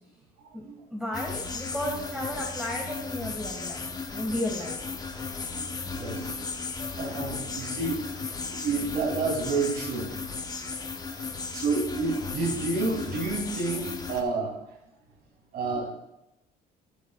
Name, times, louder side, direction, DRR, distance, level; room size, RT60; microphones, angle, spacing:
voice 1, 0.9-3.8 4.1-4.8, left 1 dB, 5° right, -2 dB, 1.9 m, -33 dB
sound 1, 1.1-14.2, left 4 dB, 25° left, 1.0 m, -35 dB
voice 2, 3.5-3.9 5.5-6.5 6.8-10.1 11.5-14.8 15.5-16.0, right 3 dB, 70° right, 0 dB, 3.2 m, -30 dB
13.5 x 10.5 x 2.4 m, 0.90 s
cardioid pair, 110°, 17 cm